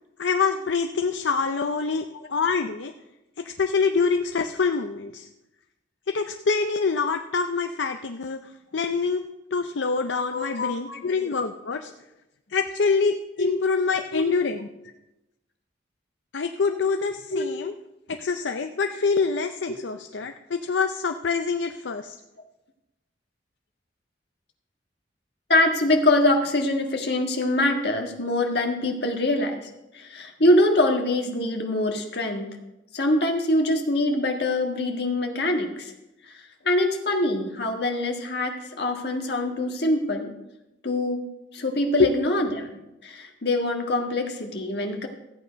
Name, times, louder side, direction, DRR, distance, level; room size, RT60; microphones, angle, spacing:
voice 1, 0.2-2.9 3.4-5.3 6.1-11.9 12.5-14.7 16.3-17.7 18.1-22.2 42.0-42.1, left 5 dB, 80° left, 6 dB, 0.6 m, -25 dB
voice 2, 10.3-11.2 13.4-13.5 14.1-14.2 17.3-17.5 19.7-19.8 25.5-29.6 29.9-32.5 32.9-35.9 36.6-40.3 40.8-41.2 41.5-42.8 43.0-45.1, left 1 dB, 60° left, 3 dB, 1.6 m, -24 dB
14.0 x 8.7 x 5.2 m, 0.95 s
head